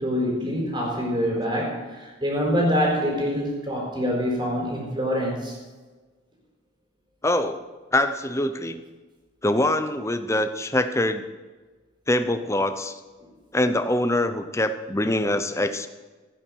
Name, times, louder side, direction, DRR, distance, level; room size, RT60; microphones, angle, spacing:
voice 1, 0.0-5.5, equal, 25° right, -1 dB, 4.3 m, -25 dB
voice 2, 7.2-7.7 7.9-8.8 9.4-11.2 12.1-13.0 13.5-15.9, left 1 dB, 15° left, 10 dB, 0.8 m, -24 dB
15.5 x 9.8 x 6.4 m, 1.3 s
head